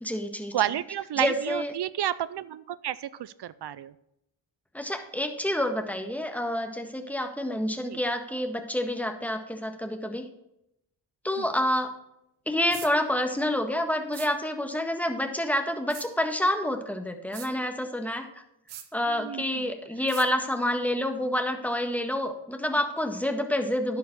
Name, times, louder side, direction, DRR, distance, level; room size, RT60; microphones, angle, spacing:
voice 1, 0.0-0.5 1.2-1.7 4.7-10.2 11.2-11.9 12.5-18.3 18.9-24.0, left 1 dB, 5° left, 5 dB, 1.6 m, -28 dB
voice 2, 0.5-3.9 7.9-8.0 11.4-11.5 19.1-19.7, right 11 dB, 60° right, 17 dB, 0.5 m, -31 dB
sound 1, 12.7-12.9 14.1-14.3 15.9-16.1 17.3-17.5 18.7-18.9 20.1-20.3, right 10 dB, 90° right, 1.0 m, -41 dB
11.0 x 5.1 x 6.7 m, 0.83 s
cardioid pair, 50°, 47 cm